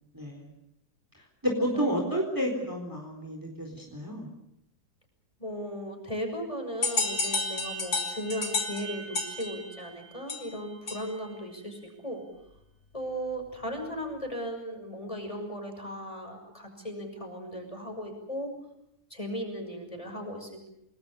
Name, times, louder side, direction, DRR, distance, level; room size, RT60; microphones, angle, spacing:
voice 1, 0.1-0.5 1.4-4.3, equal, 10° right, 2 dB, 3.9 m, -30 dB
voice 2, 1.7-2.1 5.4-12.2 12.9-18.5 19.1-20.7, equal, 20° left, 4 dB, 6.3 m, -37 dB
sound 1, 6.8-11.3, left 3 dB, 70° left, 3.9 m, -32 dB
29.5 x 20.5 x 6.9 m, 0.81 s
omnidirectional pair, 1.7 m